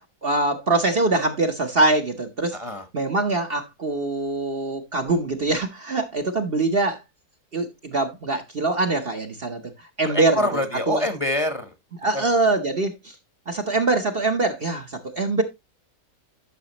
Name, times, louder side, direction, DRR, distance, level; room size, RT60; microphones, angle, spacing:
voice 1, 0.2-2.6 2.9-7.0 7.5-9.6 10.0-10.4 10.9-11.0 12.0-13.1 13.5-15.4, right 2 dB, 45° right, 1.0 m, -23 dB
voice 2, 2.5-2.9 10.0-11.7 12.1-12.3, left 1 dB, 25° left, 1.1 m, -26 dB
11.5 x 6.1 x 2.9 m
omnidirectional pair, 1.7 m